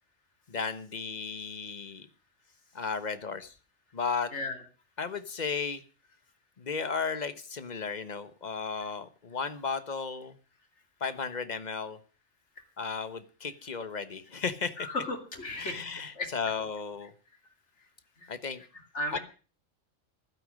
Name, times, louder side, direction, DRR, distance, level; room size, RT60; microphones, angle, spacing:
voice 1, 0.5-2.1 2.7-3.5 3.9-4.3 5.0-5.8 6.6-10.4 11.0-12.0 12.8-14.9 15.6-17.1 18.3-18.6 19.1-19.2, left 5 dB, 40° left, 13 dB, 1.2 m, -34 dB
voice 2, 14.8-15.8 16.2-16.3 18.2-18.3 18.9-19.2, left 2 dB, 75° left, 5 dB, 2.8 m, -34 dB
15.0 x 12.5 x 6.4 m, 0.38 s
omnidirectional pair, 1.2 m